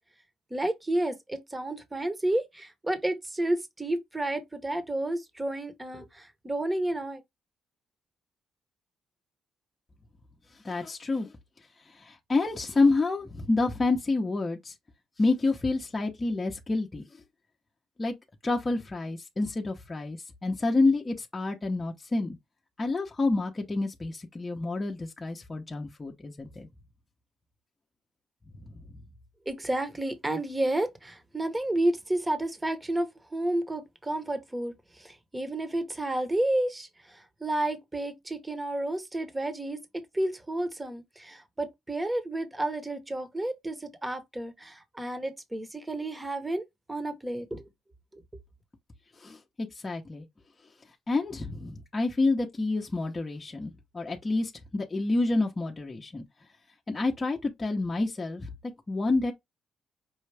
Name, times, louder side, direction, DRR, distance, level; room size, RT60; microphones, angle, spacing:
voice 1, 0.5-7.2 29.5-39.8 40.1-46.6 46.9-47.7 48.1-48.2, right 1 dB, 15° right, 1.0 m, -31 dB
voice 2, 10.6-11.3 11.9-14.7 15.2-17.0 18.0-18.1 18.4-22.4 22.8-26.7 28.7-28.8 49.2-50.2 51.1-56.2 56.9-58.5 58.9-59.3, left 3 dB, 25° left, 0.8 m, -28 dB
5.4 x 2.4 x 3.3 m
cardioid pair, 90°, 0 cm